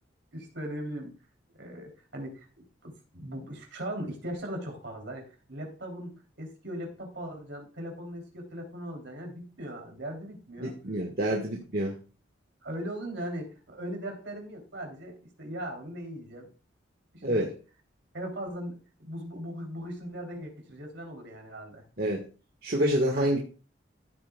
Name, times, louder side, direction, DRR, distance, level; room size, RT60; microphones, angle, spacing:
voice 1, 0.3-1.1 1.5-10.8 11.3-11.4 12.6-16.5 17.1-17.5 18.1-21.8, equal, 65° right, 2 dB, 3.3 m, -39 dB
voice 2, 10.6-11.9 17.2-17.5 22.0-22.2 22.6-23.4, right 1 dB, 50° right, 1 dB, 1.6 m, -27 dB
14.5 x 8.7 x 2.3 m, 0.34 s
head